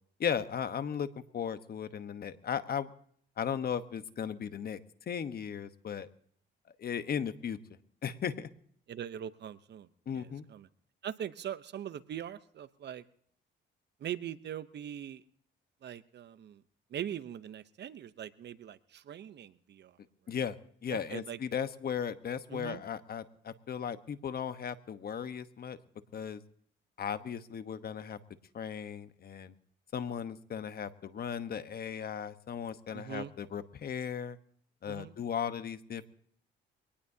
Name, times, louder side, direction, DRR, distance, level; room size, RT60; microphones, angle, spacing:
voice 1, 0.2-1.1 1.3-2.9 3.4-4.8 5.1-6.1 6.8-7.6 8.0-8.5 10.1-10.5 20.3-25.8 26.1-26.4 27.0-28.2 28.5-29.5 29.9-34.4 34.8-36.1, left 8 dB, 50° left, 11 dB, 1.1 m, -36 dB
voice 2, 8.9-10.7 11.0-13.0 14.0-15.2 15.8-16.6 16.9-19.9 20.9-21.4 22.5-22.8 32.9-33.3 34.9-35.1, right 10 dB, 60° right, 14 dB, 0.8 m, -41 dB
23.5 x 18.5 x 2.8 m, 0.63 s
cardioid pair, 90°, 20 cm